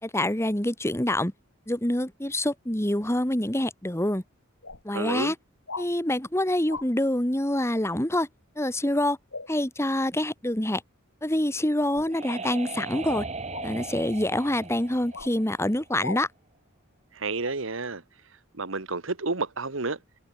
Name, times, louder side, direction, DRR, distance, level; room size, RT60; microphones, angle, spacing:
voice 1, 0.0-1.3 1.7-4.2 4.8-5.4 5.8-8.3 8.6-9.2 9.5-10.8 11.2-13.2 13.6-16.3, left 1 dB, 15° left, 2.1 m, -26 dB
sound 1, 4.0-4.1 4.6-4.8 5.7-5.9 6.7-6.9 9.3-9.5 11.9-12.2 13.5-13.7 15.1-15.3 16.0-16.2 17.4-17.6, left 4 dB, 70° left, 5.5 m, -38 dB
voice 2, 4.9-5.3 17.1-18.0 18.5-20.0, right 3 dB, 65° right, 1.6 m, -30 dB
sound 2, 11.6-16.1, right 3 dB, 30° right, 3.7 m, -38 dB
head